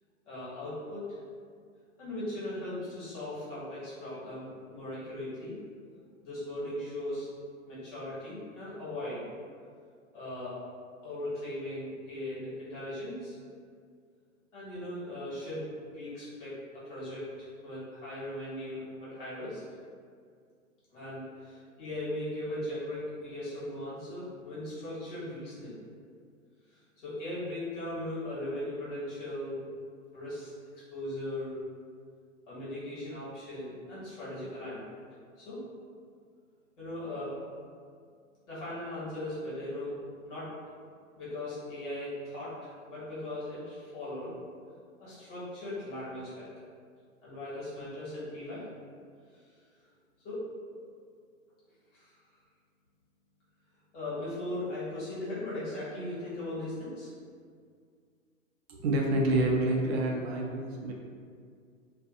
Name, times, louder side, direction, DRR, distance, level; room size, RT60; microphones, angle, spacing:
voice 1, 0.3-1.0 2.0-5.5 6.2-7.3 7.6-9.2 10.1-10.6 11.0-13.4 14.5-16.5 16.8-19.6 20.9-25.8 26.7-29.6 30.1-30.5 30.9-31.5 32.5-34.8 35.4-35.6 36.8-37.3 38.5-39.9 40.2-40.5 41.2-44.3 45.0-46.7 47.2-48.6 49.3-49.4 50.2-50.4 50.7-50.9 51.9-52.1 53.9-57.1, left 1 dB, 55° left, -9 dB, 1.4 m, -38 dB
voice 2, 58.7-60.9, right 1 dB, 50° right, 0 dB, 0.5 m, -28 dB
2.4 x 2.3 x 2.5 m, 2.1 s
figure-of-eight pair, 110°, 41 cm